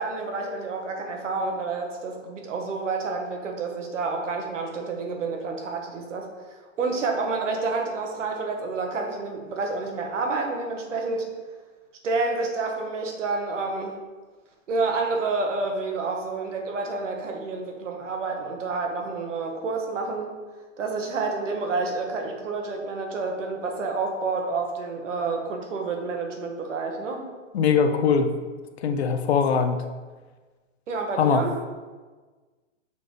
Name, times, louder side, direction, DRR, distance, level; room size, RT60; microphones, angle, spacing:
voice 1, 0.0-11.3 12.0-14.0 14.7-20.3 20.8-27.2 30.9-31.5, right 3 dB, 70° right, 2 dB, 1.3 m, -29 dB
voice 2, 27.5-28.3 28.8-29.8 31.2-31.4, left 6 dB, 55° left, 7 dB, 0.7 m, -21 dB
6.7 x 4.3 x 3.3 m, 1.4 s
hypercardioid pair, 160°, 39 cm